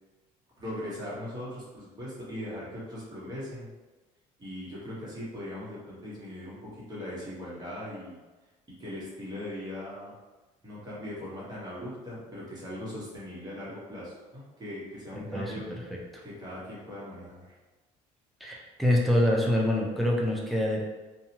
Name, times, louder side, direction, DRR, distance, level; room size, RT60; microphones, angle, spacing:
voice 1, 0.6-3.7 4.4-8.2 8.8-10.1 10.6-15.6 16.2-17.5, left 1 dB, 25° right, -8 dB, 1.2 m, -39 dB
voice 2, 15.1-16.2 18.4-20.9, left 1 dB, ahead, -2 dB, 0.5 m, -26 dB
2.7 x 2.3 x 2.8 m, 1.2 s
cardioid pair, 110°, 16 cm